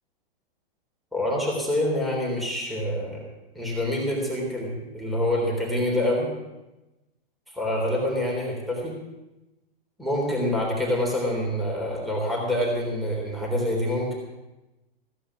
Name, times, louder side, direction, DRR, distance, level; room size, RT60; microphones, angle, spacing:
voice 1, 1.1-3.2 3.6-6.3 7.5-9.0 10.0-14.1, left 1 dB, ahead, -2 dB, 3.6 m, -26 dB
15.5 x 10.0 x 6.1 m, 1.0 s
hypercardioid pair, 130°, 29 cm